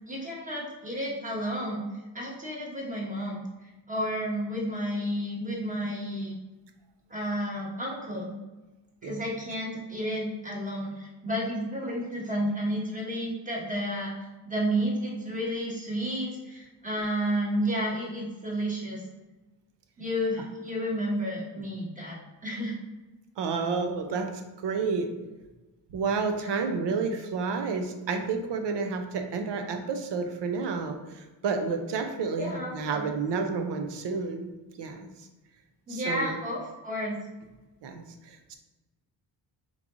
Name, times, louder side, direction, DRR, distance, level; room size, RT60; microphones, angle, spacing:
voice 1, 0.1-1.8 2.1-6.3 7.1-8.3 9.0-14.1 14.4-19.0 20.0-22.2 22.4-22.7 26.4-26.7 32.4-33.1 35.9-37.2, equal, 15° right, -3 dB, 1.1 m, -31 dB
voice 2, 23.4-24.3 24.6-25.1 25.9-34.5 34.8-35.1 35.9-36.3 37.8-38.6, right 4 dB, 65° right, 5 dB, 0.7 m, -30 dB
3.7 x 3.2 x 3.7 m, 1.1 s
cardioid pair, 115°, 45 cm